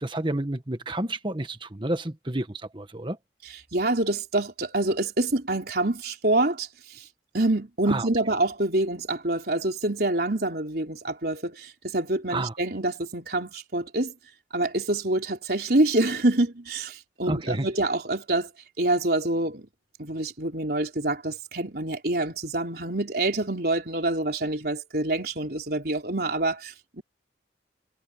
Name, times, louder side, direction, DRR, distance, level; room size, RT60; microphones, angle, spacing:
voice 1, 0.0-3.2 7.9-8.1 12.3-12.5 17.3-17.7, right 1 dB, 25° right, 1.4 m, -30 dB
voice 2, 3.7-6.7 7.3-14.1 14.5-18.5 18.8-19.7 20.0-27.0, right 2 dB, 55° right, 4.1 m, -26 dB
head